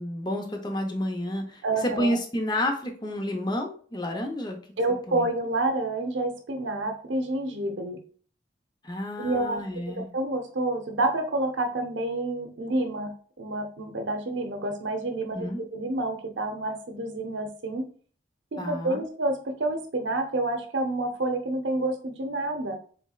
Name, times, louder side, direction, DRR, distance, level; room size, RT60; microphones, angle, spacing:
voice 1, 0.0-4.6 5.1-5.3 8.8-10.1 15.3-15.6 18.6-19.0, left 1 dB, 25° left, 3 dB, 0.7 m, -30 dB
voice 2, 1.6-2.2 4.8-8.0 9.2-9.6 9.9-13.1 13.4-17.9 18.5-22.8, right 2 dB, 85° right, 5 dB, 0.7 m, -28 dB
4.2 x 3.3 x 2.3 m, 0.44 s
head